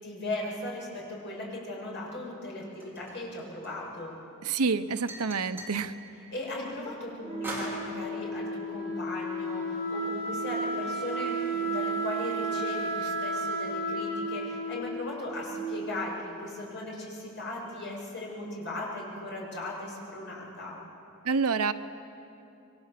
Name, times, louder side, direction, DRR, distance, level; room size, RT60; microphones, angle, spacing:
voice 1, 0.0-4.2 6.3-20.8, left 2 dB, 55° left, -3 dB, 7.2 m, -37 dB
sound 1, 2.8-4.0 5.1-5.8 7.4-7.8, right 1 dB, 10° right, 4.9 m, -39 dB
voice 2, 4.4-5.9 21.2-21.7, right 5 dB, 90° right, 11 dB, 0.9 m, -27 dB
Wind instrument woodwind instrument, 7.2-15.9, right 2 dB, 30° right, 6.3 m, -33 dB
27.5 x 23.0 x 7.6 m, 2.8 s
head